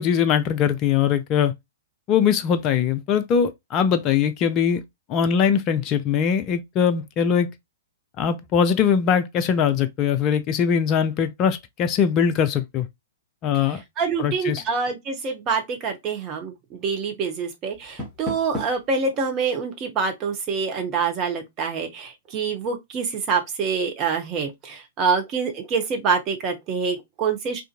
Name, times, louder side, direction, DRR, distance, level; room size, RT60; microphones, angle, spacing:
voice 1, 0.0-1.5 2.1-4.8 5.1-7.5 8.2-12.9 13.4-13.8 14.2-14.6, left 7 dB, 30° left, 0.3 m, -21 dB
voice 2, 14.0-27.6, right 5 dB, 30° right, 0.8 m, -26 dB
Door, 17.7-18.9, left 1 dB, 5° left, 1.1 m, -34 dB
2.6 x 2.5 x 2.4 m
figure-of-eight pair, 110°, 0 cm